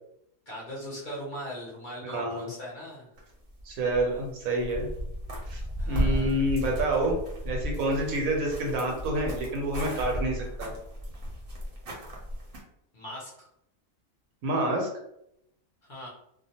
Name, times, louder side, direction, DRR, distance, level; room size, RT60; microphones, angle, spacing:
voice 1, 0.5-3.1 5.8-6.5 12.9-13.5 15.9-16.1, equal, 50° left, -5 dB, 0.7 m, -40 dB
voice 2, 2.0-2.5 3.6-4.9 5.5-5.6 5.9-7.2 7.4-10.7 14.4-14.9, right 1 dB, 85° right, 0 dB, 1.1 m, -28 dB
sound 1, 3.2-4.3 4.6-12.6, equal, 50° right, 0.8 m, -34 dB
2.5 x 2.1 x 2.7 m, 0.76 s
omnidirectional pair, 1.4 m